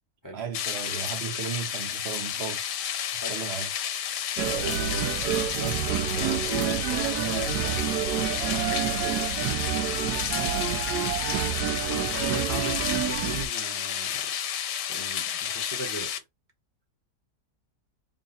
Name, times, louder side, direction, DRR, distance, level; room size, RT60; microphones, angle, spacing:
voice 1, 0.3-2.6 3.3-3.7 4.4-5.1 5.5-9.5, right 7 dB, 50° right, 0.9 m, -36 dB
sound 1, 0.5-16.2, left 9 dB, 85° left, 1.3 m, -31 dB
sound 2, 4.4-13.5, right 10 dB, 80° right, 1.1 m, -29 dB
voice 2, 11.9-14.3 14.9-16.1, right 1 dB, 15° left, 0.9 m, -38 dB
3.9 x 2.3 x 4.0 m
omnidirectional pair, 1.8 m